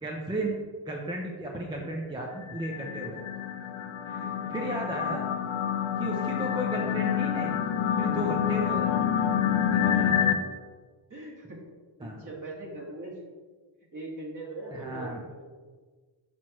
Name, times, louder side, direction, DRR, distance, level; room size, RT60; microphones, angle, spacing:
voice 1, 0.0-0.6 0.9-3.2 4.1-5.3 6.0-7.6 8.0-8.9 10.0-10.3 12.0-12.2 14.7-15.2, right 1 dB, 10° right, -1 dB, 0.6 m, -34 dB
sound 1, 2.4-10.4, left 9 dB, 90° left, 0.6 m, -27 dB
voice 2, 4.2-4.5 9.7-10.1 11.1-11.6 12.0-13.2 13.9-15.5, right 2 dB, 40° right, -3 dB, 1.9 m, -41 dB
6.1 x 6.0 x 3.1 m, 1.4 s
cardioid pair, 110°, 47 cm